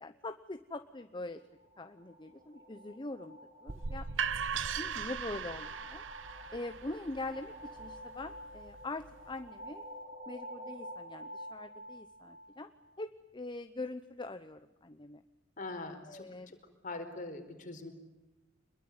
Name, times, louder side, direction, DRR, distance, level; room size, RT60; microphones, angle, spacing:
voice 1, 0.0-1.4 1.8-4.1 4.8-6.0 6.5-9.8 10.3-12.7 13.0-15.2 16.1-16.5, left 2 dB, 25° left, 9 dB, 0.9 m, -43 dB
sound 1, 1.2-12.9, equal, 45° right, 7.9 m, -49 dB
sound 2, 3.7-9.5, right 6 dB, 80° right, 1.0 m, -39 dB
voice 2, 15.6-16.3 16.8-17.9, left 2 dB, 45° left, 5 dB, 4.5 m, -42 dB
26.0 x 22.0 x 9.5 m, 1.0 s
head